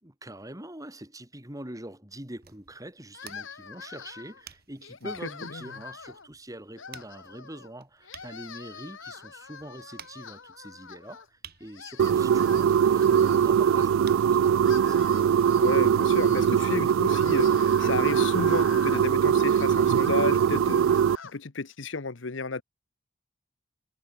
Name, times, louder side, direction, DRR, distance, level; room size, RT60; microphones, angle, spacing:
voice 1, 0.0-15.1, right 1 dB, 20° right, 4.1 m, -44 dB
sound 1, 2.2-15.5, right 9 dB, 55° right, 2.8 m, -54 dB
sound 2, 3.1-4.4 4.8-6.3 6.7-7.7 8.0-11.3 11.6-13.9 14.4-21.4, left 6 dB, 90° left, 1.8 m, -45 dB
sound 3, 12.0-21.2, right 8 dB, 90° right, 0.3 m, -22 dB
voice 2, 15.6-20.9 21.3-22.6, left 4 dB, 70° left, 1.0 m, -32 dB
head